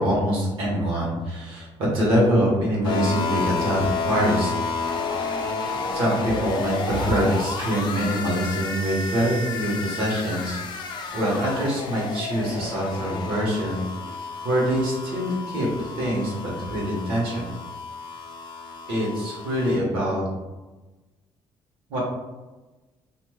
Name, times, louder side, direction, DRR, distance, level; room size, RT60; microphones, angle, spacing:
voice 1, 0.0-4.5 5.4-5.6 5.9-10.6 11.1-17.5 18.9-20.2 21.9-22.0, equal, 75° right, -4 dB, 1.2 m, -24 dB
sound 1, 2.8-19.8, left 4 dB, 50° left, 0.4 m, -31 dB
3.2 x 2.6 x 2.2 m, 1.1 s
cardioid pair, 140°, 9 cm